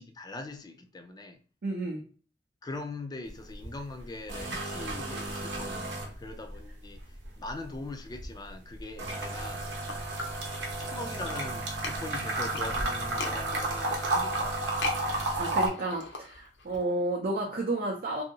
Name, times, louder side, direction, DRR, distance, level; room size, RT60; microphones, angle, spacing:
voice 1, 0.0-1.4 2.6-7.0 7.4-9.7 10.8-14.7, left 2 dB, 20° left, 0.3 m, -41 dB
voice 2, 1.6-2.0 15.0-18.2, right 2 dB, 55° right, 0.5 m, -32 dB
sound 1, 3.3-3.7 4.0-6.6 6.9-15.7, right 2 dB, 90° right, 0.8 m, -32 dB
sound 2, 9.3-10.9 11.1-16.8, left 3 dB, 75° left, 0.6 m, -40 dB
2.7 x 2.7 x 2.7 m
head